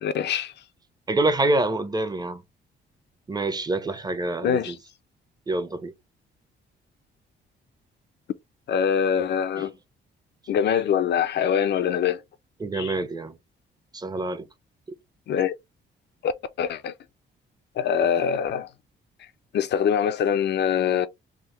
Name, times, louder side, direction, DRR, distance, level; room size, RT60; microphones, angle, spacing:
voice 1, 0.0-0.5 4.4-4.8 8.7-9.7 10.5-12.2 12.7-12.9 15.3-15.5 16.2-16.3 16.6-16.9 17.8-18.7 19.5-21.1, left 8 dB, 60° left, 0.5 m, -23 dB
voice 2, 1.1-2.4 3.3-4.8 5.5-5.9 9.6-9.7 12.6-13.3 13.9-14.5, right 2 dB, 20° right, 0.7 m, -26 dB
3.5 x 2.1 x 3.1 m
cardioid pair, 90°, 20 cm